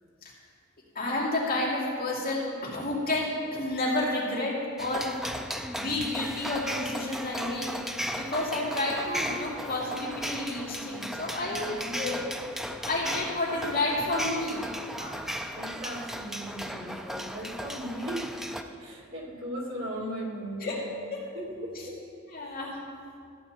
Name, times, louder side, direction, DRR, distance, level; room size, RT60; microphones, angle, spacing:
voice 1, 0.9-5.1 5.8-7.7 8.1-12.3 12.9-14.6 18.9-19.0 20.6-20.8 21.1-21.2 22.3-22.8, left 2 dB, 45° left, -6 dB, 2.4 m, -30 dB
sound 1, 4.8-18.6, equal, ahead, 0.3 m, -36 dB
voice 2, 11.3-12.3 15.0-20.7 21.3-22.6, equal, 75° right, -4 dB, 1.9 m, -38 dB
14.5 x 8.8 x 2.9 m, 2.3 s
head